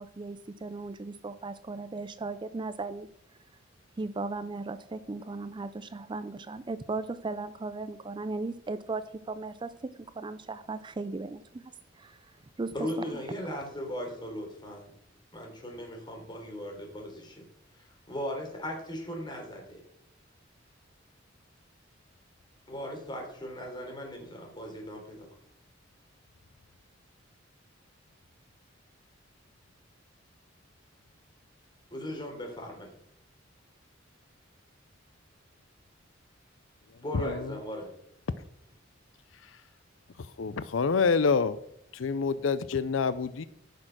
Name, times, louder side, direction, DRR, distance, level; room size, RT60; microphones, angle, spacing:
voice 1, 0.0-3.1 4.0-11.7 12.0-12.3 12.6-13.2, right 3 dB, 25° right, 0.4 m, -37 dB
voice 2, 12.7-14.9 15.3-17.4 17.8-19.8 22.7-25.3 31.9-32.9 37.0-37.9, equal, 25° left, 3.6 m, -38 dB
voice 3, 37.1-37.6 40.2-41.6 41.9-43.4, left 5 dB, 80° left, 0.5 m, -27 dB
14.5 x 6.5 x 6.1 m
head